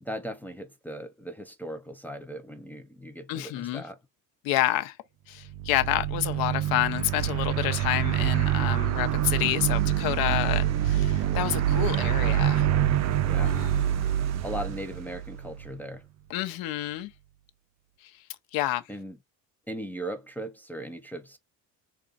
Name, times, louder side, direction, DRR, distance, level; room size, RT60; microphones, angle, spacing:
voice 1, 0.0-4.0 13.2-13.5 14.4-16.0 18.9-19.2 19.7-21.4, equal, 5° left, 0.5 m, -38 dB
voice 2, 3.3-3.8 4.4-5.0 5.3-12.7 13.4-14.1 16.3-17.1 18.0-18.2 18.5-18.8, left 15 dB, 80° left, 0.8 m, -29 dB
sound 1, 5.5-15.7, right 11 dB, 50° right, 0.5 m, -26 dB
5.0 x 2.3 x 2.5 m
cardioid pair, 110°, 36 cm